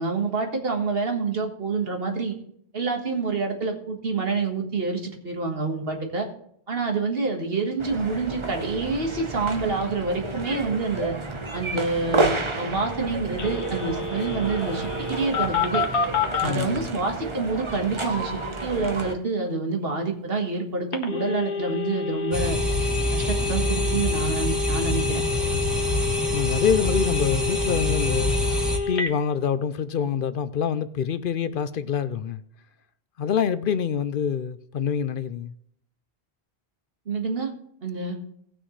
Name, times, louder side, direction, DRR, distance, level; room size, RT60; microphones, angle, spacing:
voice 1, 0.0-2.4 2.7-6.3 6.7-11.1 11.5-15.9 16.4-22.6 23.1-25.2 37.1-37.5 37.8-38.2, right 4 dB, 60° right, 1.8 m, -27 dB
sound 1, 7.8-19.2, right 2 dB, 30° right, 1.0 m, -31 dB
Telephone, 13.4-16.5 20.9-29.1, left 5 dB, 85° left, 1.4 m, -28 dB
voice 2, 16.4-16.9 26.3-28.4 28.9-32.4 33.2-35.5, left 7 dB, 60° left, 0.7 m, -26 dB
sound 2, 22.3-28.8, left 1 dB, ahead, 1.3 m, -26 dB
18.0 x 6.2 x 3.2 m
omnidirectional pair, 1.1 m